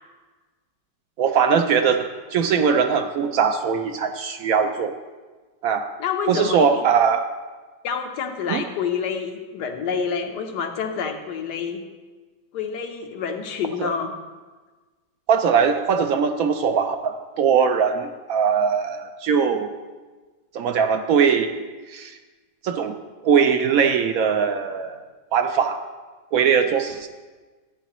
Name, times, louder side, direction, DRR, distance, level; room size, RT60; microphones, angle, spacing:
voice 1, 1.2-4.9 5.6-5.9 6.3-7.3 8.5-8.6 13.8-13.9 15.3-19.7 20.5-21.5 21.9-22.2 22.6-23.0 23.2-25.0 25.3-25.8 26.3-27.1, right 6 dB, 70° right, 7 dB, 0.9 m, -21 dB
voice 2, 6.0-6.9 7.8-11.8 12.5-14.1, left 6 dB, 80° left, 5 dB, 1.5 m, -28 dB
13.0 x 9.2 x 3.0 m, 1.3 s
omnidirectional pair, 1.8 m